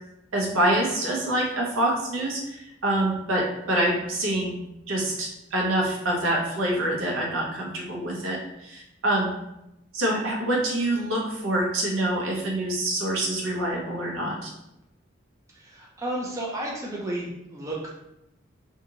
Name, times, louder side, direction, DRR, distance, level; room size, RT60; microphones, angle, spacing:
voice 1, 0.3-4.6 4.9-9.3 9.9-14.5, right 1 dB, 90° right, -1 dB, 0.8 m, -26 dB
voice 2, 15.5-17.9, right 1 dB, 15° right, -3 dB, 0.4 m, -32 dB
2.7 x 2.5 x 2.8 m, 0.85 s
head